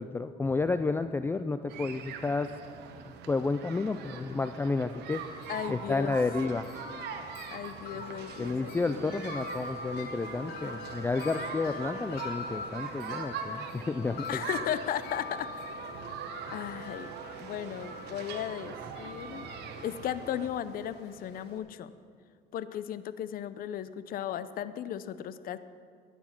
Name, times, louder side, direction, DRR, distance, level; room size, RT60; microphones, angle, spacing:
voice 1, 0.0-2.5 3.1-5.2 5.7-6.7 8.4-14.4, left 3 dB, 15° left, 10 dB, 0.3 m, -31 dB
sound 1, 1.7-20.5, right 7 dB, 75° right, 1.0 m, -43 dB
Wind chime, 5.1-21.6, left 2 dB, 80° left, 1.5 m, -44 dB
voice 2, 5.5-6.2 7.5-9.1 14.3-15.5 16.5-17.1 17.4-19.5 19.8-21.9 22.5-25.6, left 10 dB, 60° left, 14 dB, 0.6 m, -36 dB
13.0 x 9.4 x 5.9 m, 2.2 s
cardioid pair, 110°, 17 cm